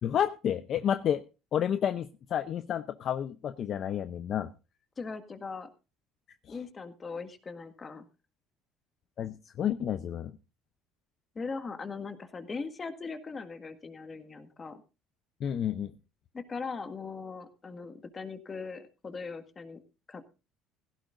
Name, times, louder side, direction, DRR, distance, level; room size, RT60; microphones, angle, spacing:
voice 1, 0.0-1.2 1.5-4.5 6.5-6.6 9.2-10.4 15.4-15.9, left 9 dB, 45° left, 10 dB, 0.7 m, -30 dB
voice 2, 5.0-5.7 6.5-8.0 11.3-14.8 16.3-19.8 20.1-20.3, left 4 dB, 25° left, 9 dB, 1.7 m, -40 dB
16.5 x 15.5 x 2.6 m, 0.31 s
cardioid pair, 140°, 0 cm